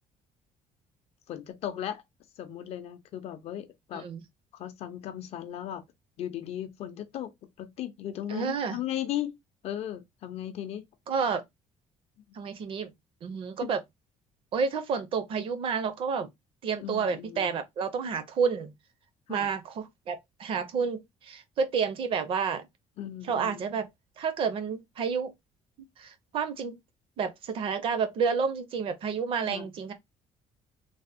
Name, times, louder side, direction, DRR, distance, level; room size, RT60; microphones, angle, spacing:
voice 1, 1.3-2.0 2.4-4.0 4.5-5.8 6.2-7.3 7.6-9.4 9.6-10.9 13.6-13.7 16.8-17.5 19.3-19.5 23.0-23.6 29.4-29.7, left 11 dB, 55° left, 0.5 m, -36 dB
voice 2, 8.3-8.8 11.1-11.4 12.3-12.9 13.2-13.8 14.5-16.3 16.6-18.7 19.3-22.7 23.3-23.9 24.2-25.3 26.0-26.8 27.2-29.9, right 6 dB, 45° right, 0.5 m, -30 dB
3.3 x 2.0 x 2.6 m
cardioid pair, 160°, 13 cm